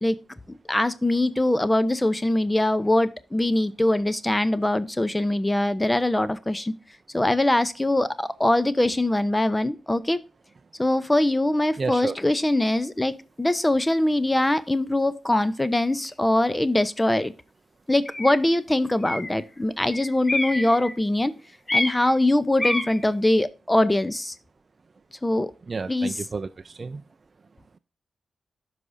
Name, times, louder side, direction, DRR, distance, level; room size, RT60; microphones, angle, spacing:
voice 1, 0.5-6.7 7.1-10.2 10.8-13.1 13.4-17.3 17.9-21.3 21.7-24.3 25.2-25.5 25.9-26.1, left 1 dB, 15° left, 15 dB, 0.6 m, -22 dB
voice 2, 11.8-12.1 25.7-27.0, right 4 dB, 45° right, 9 dB, 0.4 m, -31 dB
sound 1, 16.1-16.2 17.1-17.2 18.0-18.4 19.0-19.4 19.9-21.1 21.7-22.2 22.6-23.1, left 2 dB, 30° left, 1.3 m, -28 dB
12.0 x 4.9 x 2.6 m, 0.33 s
supercardioid pair, 50°, 0 cm